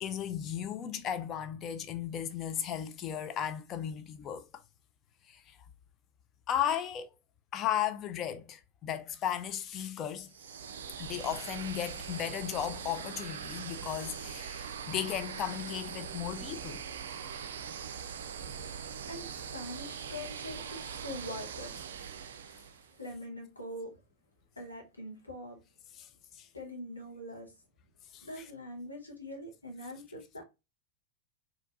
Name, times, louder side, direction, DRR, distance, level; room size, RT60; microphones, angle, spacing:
voice 1, 0.0-4.4 5.3-5.6 6.5-7.1 7.5-10.3 11.0-16.8 26.0-26.1 26.3-26.5 28.1-28.3, left 10 dB, 30° left, 0.4 m, -35 dB
sound 1, 10.3-23.0, right 7 dB, 60° right, 0.4 m, -42 dB
voice 2, 19.1-21.8 23.0-23.9 24.6-25.6 26.5-27.5 28.2-30.4, left 1 dB, 80° left, 1.1 m, -43 dB
4.4 x 2.7 x 2.4 m
figure-of-eight pair, 90°, 0 cm